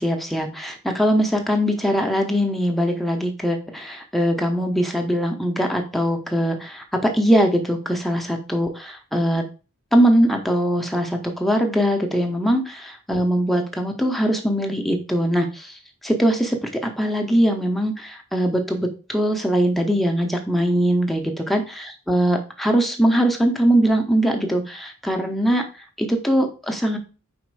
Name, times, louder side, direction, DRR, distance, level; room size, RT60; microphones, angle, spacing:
voice 1, 0.0-9.4 9.9-25.6 26.0-27.0, equal, ahead, 3 dB, 0.8 m, -21 dB
4.8 x 4.3 x 4.7 m, 0.34 s
head